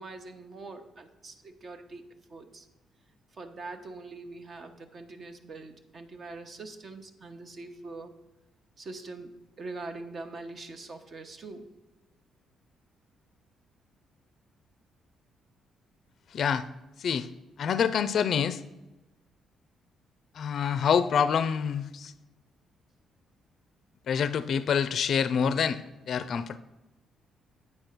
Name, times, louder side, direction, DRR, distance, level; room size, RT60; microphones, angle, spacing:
voice 1, 0.0-2.0 2.3-2.7 3.3-8.1 8.8-11.7, right 3 dB, 45° right, 7 dB, 1.0 m, -43 dB
voice 2, 16.3-16.7 17.0-17.3 17.6-18.6 20.4-22.1 24.1-26.6, left 7 dB, 60° left, 14 dB, 0.4 m, -26 dB
8.6 x 4.4 x 6.5 m, 1.0 s
cardioid pair, 90°, 0 cm